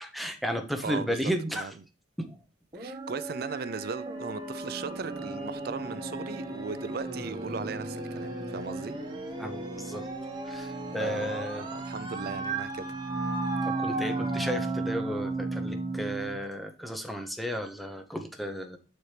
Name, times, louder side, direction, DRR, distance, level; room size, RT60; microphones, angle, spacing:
voice 1, 0.0-1.7 2.2-2.4 9.4-10.0 10.5-11.7 13.6-18.8, equal, ahead, 0.8 m, -33 dB
voice 2, 0.8-1.7 2.7-9.0 11.0-13.0, right 5 dB, 55° right, 0.4 m, -38 dB
sound 1, 2.7-16.3, right 2 dB, 25° right, 1.1 m, -34 dB
7.7 x 4.3 x 3.3 m
head